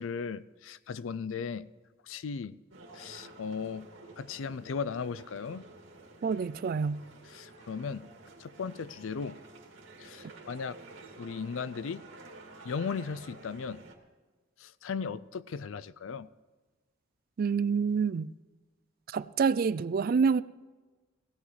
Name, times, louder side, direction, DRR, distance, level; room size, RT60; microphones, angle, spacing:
voice 1, 0.0-1.7 2.0-2.6 2.9-3.9 4.2-5.7 7.3-8.1 8.4-9.4 10.0-10.8 11.2-12.0 12.6-13.8 14.6-16.3, left 5 dB, 85° left, 0.4 m, -37 dB
sound 1, 2.7-14.0, right 2 dB, 85° right, 2.2 m, -51 dB
voice 2, 6.2-7.0 17.4-18.3 19.1-20.4, right 5 dB, 50° right, 0.3 m, -27 dB
17.0 x 16.5 x 3.2 m
head